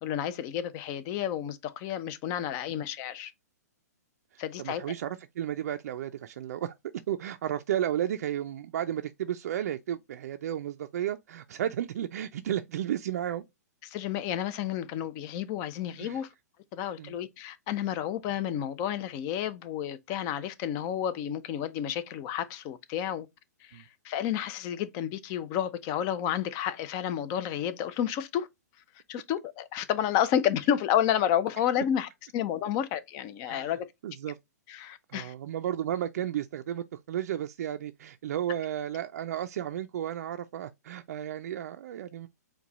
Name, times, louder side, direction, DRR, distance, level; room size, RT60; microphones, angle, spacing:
voice 1, 0.0-3.3 4.4-4.8 13.8-16.3 16.7-23.3 23.6-28.5 29.1-33.9 34.7-35.3, left 10 dB, 35° left, 0.6 m, -31 dB
voice 2, 4.3-6.7 7.1-13.4 16.0-16.2 17.0-17.2 23.7-23.8 33.5-33.7 34.0-34.4 35.1-42.3, right 11 dB, 60° right, 0.4 m, -33 dB
4.6 x 2.3 x 4.0 m
hypercardioid pair, 125°, 9 cm